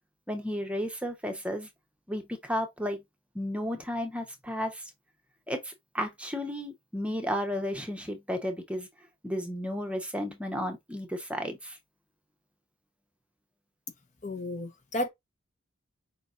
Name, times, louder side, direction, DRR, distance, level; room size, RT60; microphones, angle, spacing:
voice 1, 0.3-1.7 2.1-3.0 3.3-4.9 5.5-8.9 9.2-11.8, equal, 5° right, 0.8 m, -33 dB
voice 2, 14.2-15.1, left 1 dB, 35° left, 0.8 m, -32 dB
5.2 x 3.9 x 2.4 m
head